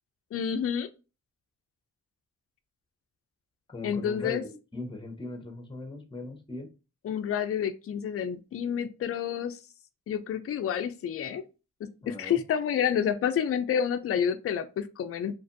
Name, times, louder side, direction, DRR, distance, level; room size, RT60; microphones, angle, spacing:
voice 1, 0.3-0.9 3.8-4.4 7.0-9.6 10.1-11.4 12.1-15.3, left 8 dB, 45° left, 0.4 m, -29 dB
voice 2, 3.7-6.7 12.0-12.4, left 2 dB, 15° left, 0.8 m, -39 dB
2.6 x 2.4 x 2.5 m
cardioid pair, 65°, 31 cm